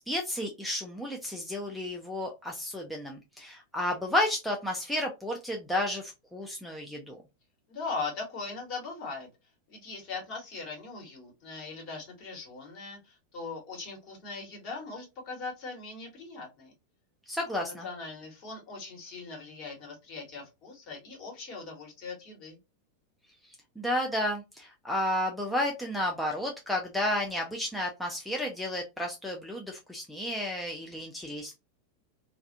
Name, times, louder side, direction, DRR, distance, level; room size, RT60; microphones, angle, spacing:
voice 1, 0.0-7.2 17.3-17.8 23.8-31.5, left 1 dB, ahead, -1 dB, 0.4 m, -32 dB
voice 2, 7.7-9.3 9.7-16.7 17.6-22.6, left 4 dB, 40° left, 0 dB, 1.2 m, -40 dB
2.4 x 2.3 x 2.7 m, 0.25 s
figure-of-eight pair, 90°, 0 cm